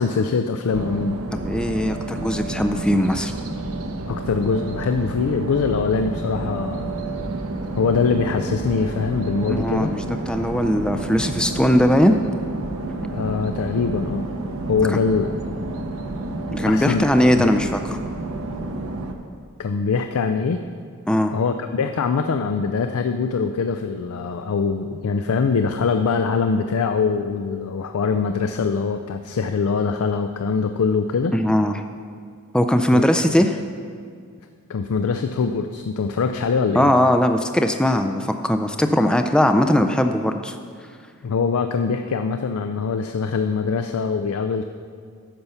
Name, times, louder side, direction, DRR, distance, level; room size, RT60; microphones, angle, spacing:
voice 1, 0.0-1.2 4.1-6.9 7.8-9.9 13.1-14.3 14.7-15.5 16.6-17.1 17.4-17.5 19.6-20.6 21.3-31.3 32.9-33.0 34.7-36.9 41.2-44.6, left 5 dB, 70° left, 7 dB, 0.4 m, -23 dB
sound 1, 0.7-19.1, right 2 dB, 65° right, 0.8 m, -30 dB
voice 2, 1.3-3.3 9.5-12.2 16.5-17.8 21.1-21.3 31.3-31.7 32.5-33.6 36.7-40.6, equal, 5° left, 6 dB, 0.3 m, -19 dB
10.5 x 6.7 x 5.6 m, 2.1 s
head